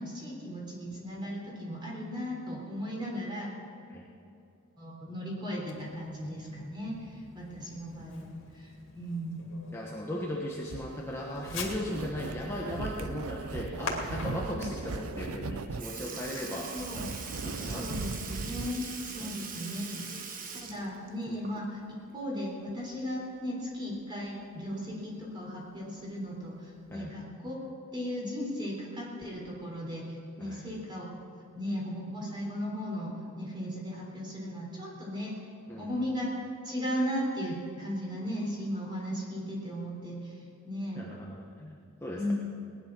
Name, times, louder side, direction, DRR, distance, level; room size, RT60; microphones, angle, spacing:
voice 1, 0.0-3.5 4.8-8.2 8.5-9.4 14.5-14.7 16.7-17.1 17.6-21.8 22.1-27.5 27.9-31.1 31.5-35.3 35.7-36.4 36.6-40.3 40.6-41.0 42.1-42.3, equal, 20° right, -2 dB, 3.7 m, -36 dB
Fireworks, 5.6-16.3, left 3 dB, 60° left, 2.6 m, -45 dB
voice 2, 9.7-16.8 17.4-18.1 19.2-19.3 19.7-20.0 21.3-21.4 26.9-27.1 30.4-30.6 35.7-36.0 41.0-42.3, left 1 dB, 10° left, -3 dB, 1.2 m, -37 dB
sound 1, 10.7-18.7, right 3 dB, 80° right, 0.7 m, -38 dB
Sink (filling or washing) / Liquid, 15.4-15.5 15.8-21.9 22.2-22.3 23.9-24.0 24.9-25.0 25.8-26.1 26.9-27.0, right 5 dB, 40° right, 1.2 m, -42 dB
18.5 x 10.5 x 6.2 m, 2.6 s
head